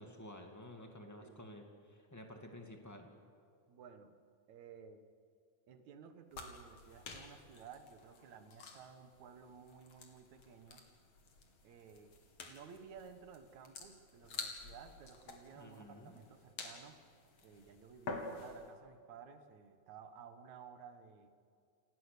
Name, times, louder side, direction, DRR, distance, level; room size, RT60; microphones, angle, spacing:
voice 1, 0.0-3.1 15.5-16.2, left 1 dB, 20° left, 2 dB, 0.4 m, -52 dB
voice 2, 3.7-4.2 4.5-5.0 5.7-10.8 11.6-12.2 12.5-17.0 17.4-21.3, right 7 dB, 60° right, 8 dB, 2.4 m, -55 dB
sound 1, 6.3-18.7, left 3 dB, 45° left, 3.0 m, -50 dB
29.0 x 19.0 x 6.8 m, 2.5 s
omnidirectional pair, 4.5 m